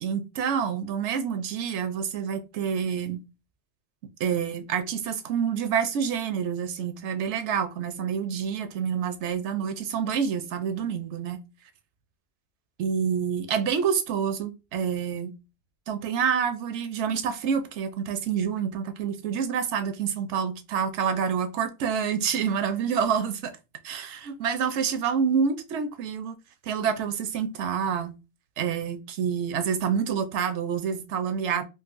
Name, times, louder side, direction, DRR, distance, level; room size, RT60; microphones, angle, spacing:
voice 1, 0.0-3.2 4.2-11.4 12.8-15.4 15.9-23.5 23.8-26.4 26.7-28.2 28.6-31.6, right 7 dB, 80° right, 0.9 m, -27 dB
3.9 x 2.4 x 2.4 m
omnidirectional pair, 1.2 m